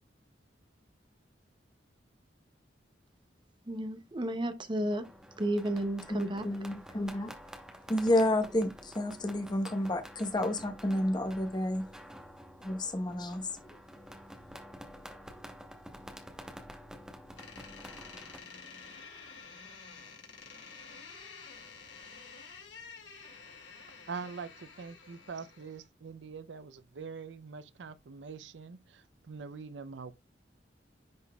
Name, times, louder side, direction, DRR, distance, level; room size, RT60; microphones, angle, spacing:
voice 1, 3.7-5.1 5.4-6.5, right 1 dB, 25° right, 0.7 m, -32 dB
sound 1, 4.9-18.4, equal, 5° right, 1.0 m, -49 dB
voice 2, 6.1-7.3 7.9-11.9 12.6-13.8, left 1 dB, 25° left, 1.0 m, -30 dB
Door, 17.4-25.9, left 5 dB, 85° left, 2.1 m, -50 dB
voice 3, 24.1-30.1, right 5 dB, 80° right, 0.5 m, -44 dB
10.5 x 4.0 x 2.3 m
head